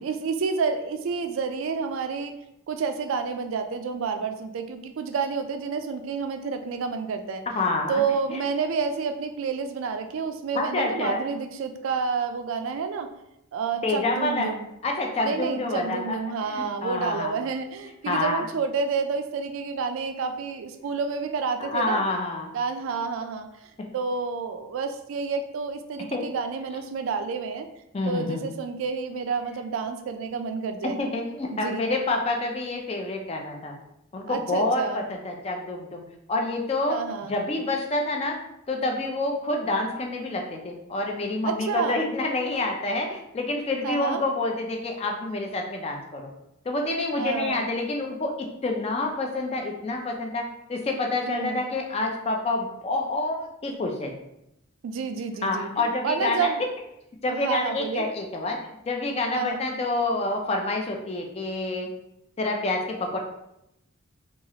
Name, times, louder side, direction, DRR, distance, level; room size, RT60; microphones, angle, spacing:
voice 1, 0.0-2.4 2.7-7.4 7.9-13.1 13.5-14.6 15.2-22.1 22.5-23.5 23.9-27.7 28.1-31.0 31.5-31.9 34.3-35.0 36.9-37.3 41.4-42.1 43.8-44.2 47.2-47.7 51.3-51.6 54.8-56.6 57.3-58.1 59.3-59.6, right 5 dB, 70° right, 7 dB, 0.3 m, -29 dB
voice 2, 7.5-8.0 8.3-8.4 10.5-11.2 13.8-14.5 14.8-16.2 16.5-17.3 18.1-18.4 21.6-22.5 26.1-26.2 27.9-28.4 30.8-33.8 34.1-36.0 36.3-37.0 37.2-38.4 38.7-46.3 46.7-54.1 55.4-56.5 57.2-58.6 58.9-61.9 62.4-63.2, left 2 dB, 30° left, 2 dB, 0.4 m, -28 dB
3.0 x 2.3 x 2.7 m, 0.84 s
head